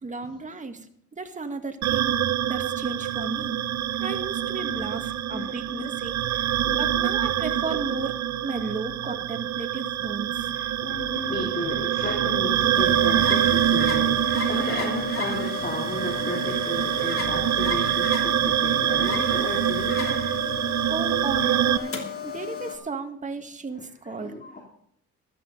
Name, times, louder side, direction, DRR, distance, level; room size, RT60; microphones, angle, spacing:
voice 1, 0.0-2.1 2.4-3.6 4.0-10.5 20.9-24.3, right 3 dB, 25° right, 5 dB, 1.8 m, -34 dB
sound 1, 1.8-21.8, right 11 dB, 65° right, 0.8 m, -25 dB
voice 2, 4.6-5.0 5.3-5.9 6.6-7.0 10.4-20.3 21.4-21.5 23.7-24.6, left 2 dB, 30° left, 0 dB, 3.3 m, -34 dB
sound 2, 12.7-22.8, left 6 dB, 45° left, 3.0 m, -34 dB
14.0 x 13.0 x 4.0 m, 0.64 s
cardioid pair, 90°, 30 cm